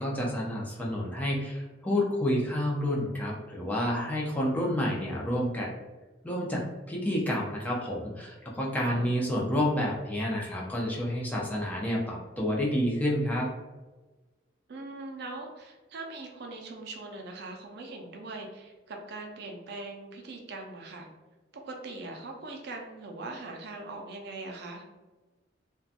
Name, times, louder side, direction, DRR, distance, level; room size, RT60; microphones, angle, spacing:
voice 1, 0.0-5.7 6.2-13.5, left 1 dB, 10° left, -4 dB, 0.5 m, -29 dB
voice 2, 14.7-21.1 21.7-24.8, right 2 dB, 65° right, 2 dB, 0.4 m, -41 dB
2.6 x 2.2 x 2.4 m, 1.2 s
head